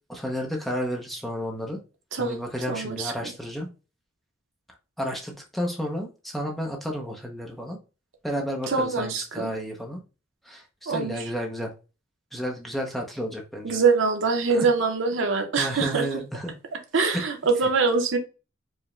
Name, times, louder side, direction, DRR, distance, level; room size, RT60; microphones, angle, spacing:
voice 1, 0.1-1.8 2.2-3.7 5.0-7.8 8.2-10.0 10.4-11.7 12.3-13.8 14.5-14.7 15.6-16.5 16.9-17.2, equal, ahead, 0.6 m, -31 dB
voice 2, 2.7-3.3 8.7-9.5 10.9-11.2 13.6-16.0 16.9-18.2, right 4 dB, 70° right, 0.7 m, -24 dB
4.8 x 2.1 x 3.1 m
head